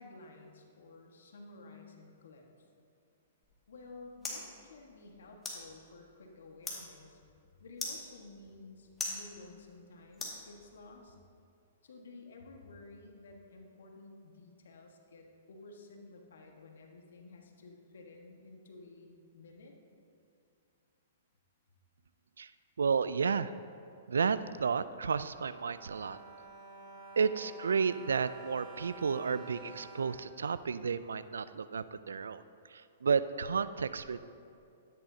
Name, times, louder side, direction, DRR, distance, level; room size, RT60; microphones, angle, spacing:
voice 1, 0.0-2.5 3.7-7.2 7.6-11.2 11.8-19.7, left 3 dB, 75° left, 2 dB, 1.5 m, -53 dB
sound 1, 3.4-11.0, left 3 dB, 20° left, 2.1 m, -45 dB
voice 2, 22.8-23.5 24.1-26.2 27.2-32.4 32.7-34.2, right 5 dB, 85° right, 14 dB, 0.4 m, -32 dB
Bowed string instrument, 25.2-31.2 31.9-32.0 32.3-32.4, right 3 dB, 30° right, 2.2 m, -51 dB
13.0 x 10.0 x 2.8 m, 2.6 s
hypercardioid pair, 125°, 0 cm